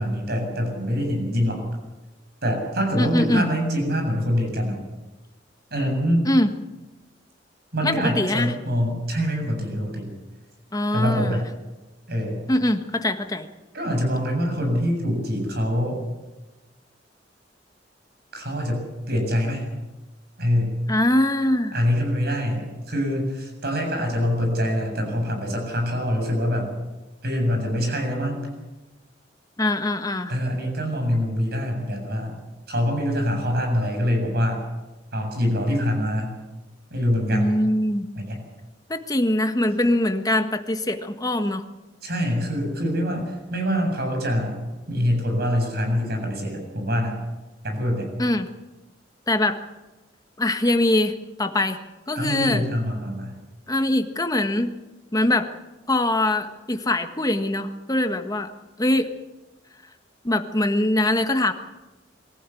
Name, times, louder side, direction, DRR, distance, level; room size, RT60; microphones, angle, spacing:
voice 1, 0.0-1.6 2.4-4.8 5.7-6.3 7.7-10.1 10.9-11.5 12.1-12.4 13.7-16.0 18.3-19.7 20.4-20.8 21.7-26.7 27.2-28.4 30.3-32.4 32.7-34.6 35.1-36.4 36.9-37.5 38.2-38.4 42.0-44.6 44.9-47.2 47.6-48.1 52.2-53.4, equal, 60° right, 3 dB, 7.3 m, -24 dB
voice 2, 3.0-3.5 6.3-6.5 7.8-8.5 10.7-11.4 12.5-13.5 20.9-21.7 29.6-30.3 37.3-38.1 38.9-41.6 48.2-48.5 49.3-49.6 50.4-51.8 52.1-52.6 53.7-54.7 55.1-55.5 55.9-58.5 58.8-59.1 60.2-61.5, left 1 dB, 20° left, 7 dB, 1.4 m, -22 dB
23.5 x 14.5 x 8.4 m, 1.1 s
head